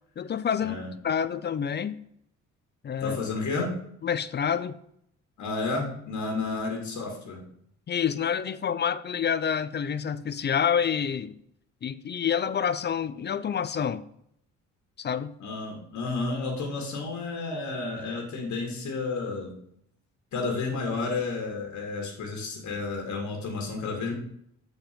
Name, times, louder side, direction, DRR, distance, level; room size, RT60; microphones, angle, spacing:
voice 1, 0.2-0.8 1.0-2.0 2.8-3.2 4.0-4.7 7.9-11.4 11.8-14.0 15.0-15.3, left 7 dB, 35° left, 15 dB, 0.4 m, -28 dB
voice 2, 3.0-3.7 5.4-7.4 15.4-19.5 20.3-24.1, left 3 dB, 70° left, 1 dB, 2.1 m, -31 dB
7.7 x 4.5 x 5.2 m, 0.71 s
cardioid pair, 90°, 30 cm